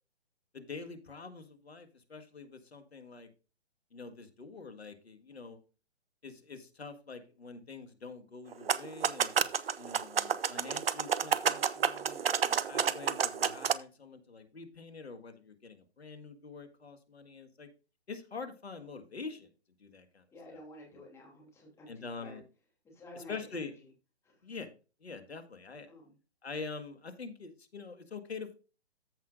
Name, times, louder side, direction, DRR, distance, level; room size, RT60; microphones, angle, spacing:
voice 1, 0.5-3.3 3.9-5.6 6.2-9.3 9.8-17.7 18.1-19.5 19.8-20.2 21.9-22.4 23.3-23.7 24.4-24.7 25.0-25.9 26.4-28.5, left 4 dB, 70° left, 8 dB, 1.8 m, -45 dB
sound 1, 8.5-13.7, right 7 dB, 60° right, 0.8 m, -30 dB
voice 2, 20.3-22.4 22.8-23.9 24.2-24.4 25.8-26.1, left 1 dB, 10° left, -1 dB, 3.0 m, -52 dB
14.5 x 5.8 x 2.5 m, 0.32 s
figure-of-eight pair, 130°, 33 cm